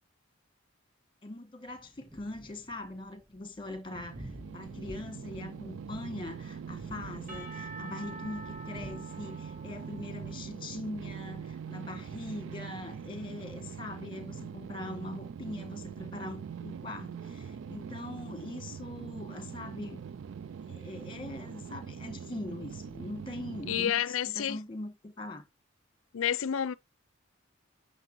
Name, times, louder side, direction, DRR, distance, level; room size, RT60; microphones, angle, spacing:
voice 1, 1.2-20.0 20.6-25.4, left 2 dB, 25° left, 1.5 m, -42 dB
Thunder, 1.6-16.9, equal, 5° right, 0.6 m, -53 dB
sound 1, 3.9-23.9, right 7 dB, 65° right, 0.3 m, -43 dB
Percussion / Church bell, 7.3-11.2, right 1 dB, 40° right, 1.9 m, -47 dB
voice 2, 23.7-24.6 26.1-26.7, left 9 dB, 80° left, 0.5 m, -29 dB
9.6 x 6.7 x 2.7 m
head